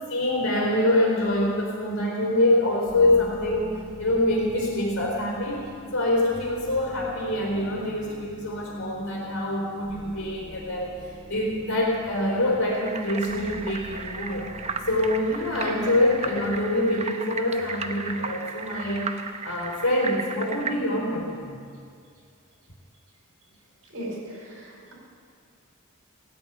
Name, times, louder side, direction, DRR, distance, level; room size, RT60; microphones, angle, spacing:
voice 1, 0.1-14.5 14.9-21.6, left 1 dB, 85° left, -5 dB, 3.8 m, -25 dB
sound 1, 2.8-16.7, equal, 35° left, 2.9 m, -45 dB
sound 2, 12.7-20.7, right 5 dB, 30° right, 0.7 m, -35 dB
voice 2, 23.9-24.9, right 1 dB, 80° right, -1 dB, 4.8 m, -37 dB
16.5 x 8.6 x 9.0 m, 2.2 s
head